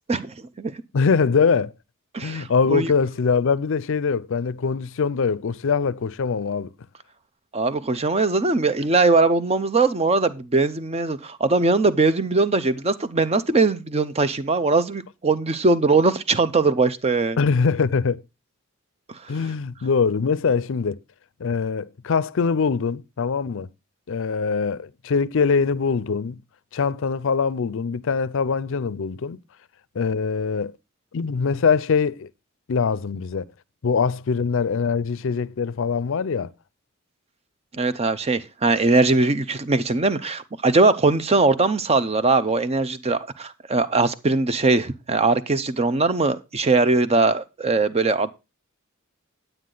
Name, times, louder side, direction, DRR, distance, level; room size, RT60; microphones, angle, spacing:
voice 1, 0.1-0.7 2.1-2.9 7.5-17.4 37.8-48.3, right 3 dB, 30° right, 0.6 m, -21 dB
voice 2, 0.9-1.7 2.2-6.7 17.4-18.2 19.3-21.0 21.4-23.7 24.1-26.4 26.7-29.4 29.9-30.7 31.1-32.3 32.7-33.4 33.8-36.5, left 5 dB, 65° left, 0.5 m, -23 dB
9.4 x 9.1 x 3.8 m
head